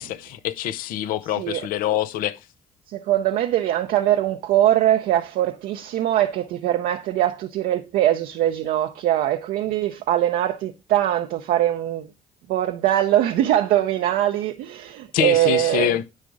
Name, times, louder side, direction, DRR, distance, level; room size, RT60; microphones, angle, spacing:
voice 1, 0.0-2.4 15.1-16.0, left 12 dB, 75° left, 0.6 m, -25 dB
voice 2, 1.4-1.7 2.9-12.1 12.5-16.0, right 12 dB, 75° right, 0.6 m, -22 dB
9.7 x 3.5 x 6.1 m
supercardioid pair, 60°, 15 cm